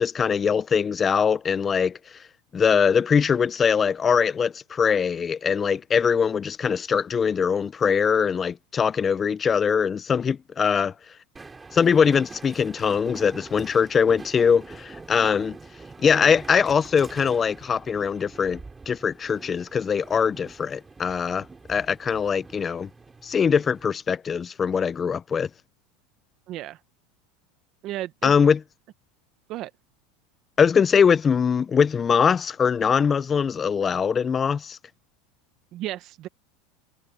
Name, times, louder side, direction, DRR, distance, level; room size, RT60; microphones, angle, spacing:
voice 1, 0.0-2.0 2.5-10.9 11.7-15.6 16.0-18.6 18.9-22.9 23.2-25.5 28.2-28.6 30.6-34.8, left 6 dB, 20° left, 0.3 m, -22 dB
Train, 11.4-23.9, right 3 dB, 10° right, 2.6 m, -45 dB
voice 2, 26.5-26.8 27.8-28.3 29.5-29.7 35.7-36.3, right 15 dB, 40° right, 0.7 m, -33 dB
supercardioid pair, 160°, 0 cm